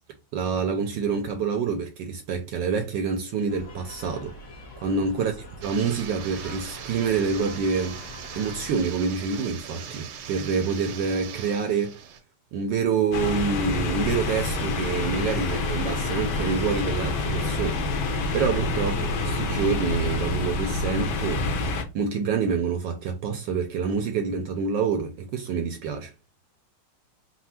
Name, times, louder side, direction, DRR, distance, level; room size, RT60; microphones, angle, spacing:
voice 1, 0.3-4.3 4.8-5.3 5.6-8.0 8.4-12.0 12.5-21.5 21.9-26.1, right 5 dB, 70° right, 1.1 m, -27 dB
sound 1, 3.5-8.8, left 1 dB, 45° left, 1.3 m, -44 dB
sound 2, 5.6-12.2, right 7 dB, 90° right, 1.6 m, -40 dB
sound 3, 13.1-21.8, left 3 dB, 70° left, 1.5 m, -27 dB
4.3 x 2.2 x 4.2 m
omnidirectional pair, 2.3 m